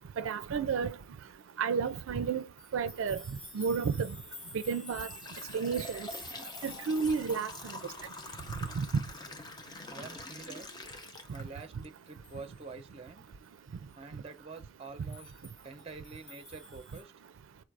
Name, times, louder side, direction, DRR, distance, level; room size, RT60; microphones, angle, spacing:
voice 1, 0.2-1.0 1.6-2.4 2.7-3.2 3.5-4.1 4.7-5.1 5.5-6.1 6.6-7.5 8.8-8.9, right 5 dB, 80° right, 0.4 m, -31 dB
sound 1, 2.6-9.9 10.2-10.3 10.7-10.8 11.1-11.2 11.6-11.7 12.1-12.6 15.0-17.0, left 2 dB, 85° left, 3.2 m, -50 dB
sound 2, 4.2-4.3 4.7-11.9 12.3-12.4 13.3-13.4 13.9-14.0 14.4-14.6, left 2 dB, 20° left, 0.4 m, -46 dB
voice 2, 9.9-10.7 11.3-13.3 14.0-15.3 15.6-17.1, right 4 dB, 30° right, 0.6 m, -47 dB
4.6 x 2.5 x 4.5 m
head